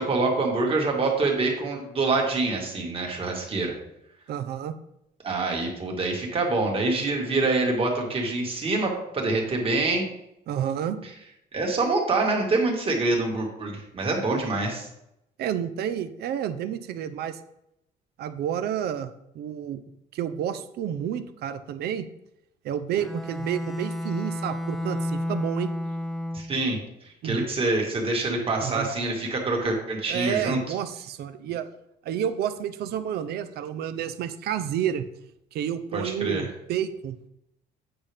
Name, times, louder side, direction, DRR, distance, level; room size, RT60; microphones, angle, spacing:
voice 1, 0.0-3.7 5.2-10.0 11.5-14.9 26.3-26.8 27.2-30.6 35.9-36.4, right 3 dB, 35° right, 0 dB, 2.0 m, -25 dB
voice 2, 4.3-4.8 10.5-11.0 15.4-17.4 18.2-19.8 20.1-22.0 22.6-25.7 27.2-27.5 28.6-28.9 30.1-31.7 32.0-35.1 35.5-37.2, right 9 dB, 70° right, 10 dB, 0.7 m, -30 dB
Bowed string instrument, 22.9-26.7, left 1 dB, ahead, 0.5 m, -31 dB
8.8 x 5.7 x 3.5 m, 0.82 s
cardioid pair, 110°, 17 cm